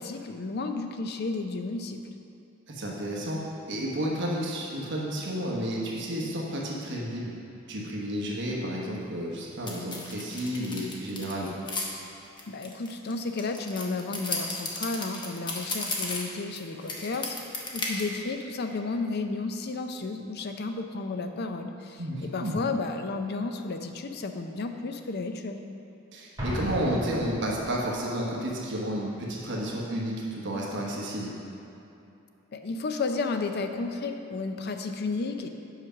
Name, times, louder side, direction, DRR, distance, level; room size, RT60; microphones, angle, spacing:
voice 1, 0.0-2.0 12.5-25.6 32.5-35.5, left 3 dB, 50° left, 6 dB, 0.5 m, -32 dB
voice 2, 2.7-3.4 3.7-7.3 7.7-11.5 22.0-22.6 26.1-31.3, equal, 60° right, -3 dB, 1.2 m, -31 dB
sound 1, 9.7-11.8 12.4-16.6 16.9-18.0, left 3 dB, 20° left, 0.9 m, -34 dB
Explosion, 26.4-28.0, equal, 15° right, 1.8 m, -34 dB
7.9 x 5.0 x 5.8 m, 2.8 s
head